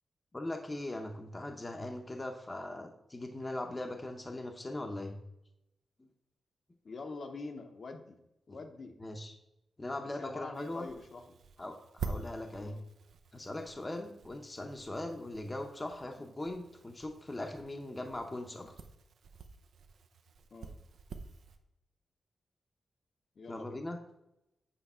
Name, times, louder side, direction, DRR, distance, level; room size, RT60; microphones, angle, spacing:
voice 1, 0.3-5.2 6.0-6.1 8.5-8.6 9.0-9.3 9.8-10.9 11.6-12.8 13.3-18.7 23.5-24.0, left 1 dB, 20° left, 4 dB, 0.7 m, -40 dB
voice 2, 6.8-8.2 8.5-9.0 10.2-11.2 12.6-12.8 16.2-16.3 18.5-18.7 20.5-20.7 23.4-23.8, left 3 dB, 50° left, 5 dB, 0.8 m, -45 dB
sound 1, 10.5-21.6, right 5 dB, 80° right, 0.6 m, -48 dB
8.3 x 3.3 x 5.5 m, 0.85 s
wide cardioid pair, 135°, 0 cm